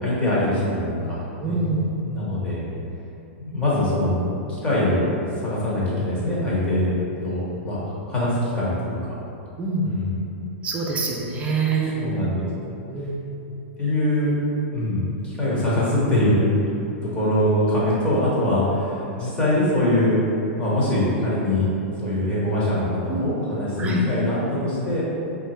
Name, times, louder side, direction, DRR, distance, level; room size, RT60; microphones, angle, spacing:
voice 1, 0.0-1.6 2.0-2.7 3.4-5.1 5.4-6.9 7.2-9.2 9.8-10.3 12.0-12.5 13.8-14.3 14.7-16.5 17.0-20.2 20.6-21.7 22.0-25.0, left 1 dB, 15° left, -8 dB, 1.1 m, -23 dB
voice 2, 1.4-1.9 9.6-9.9 10.6-12.3 12.9-13.5 23.1-23.4 23.8-24.0, right 3 dB, 20° right, -2 dB, 0.5 m, -25 dB
3.3 x 2.5 x 4.3 m, 2.9 s
hypercardioid pair, 140°, 6 cm